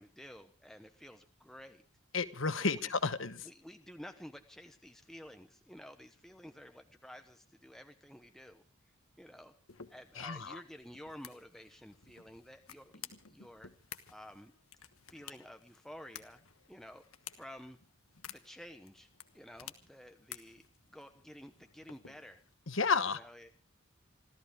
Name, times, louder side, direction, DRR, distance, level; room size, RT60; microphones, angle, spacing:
voice 1, 0.0-1.8 2.6-2.9 3.4-8.6 9.2-9.5 9.9-13.7 14.1-14.5 15.1-16.4 16.7-17.0 17.3-17.8 18.3-19.1 19.3-22.4 23.1-23.5, equal, ahead, 6 dB, 1.0 m, -52 dB
voice 2, 2.1-3.5 10.2-10.6 22.7-23.2, left 4 dB, 70° left, 12 dB, 1.2 m, -32 dB
sound 1, 9.7-22.5, left 9 dB, 90° left, 1.4 m, -54 dB
27.0 x 14.0 x 3.6 m, 0.36 s
head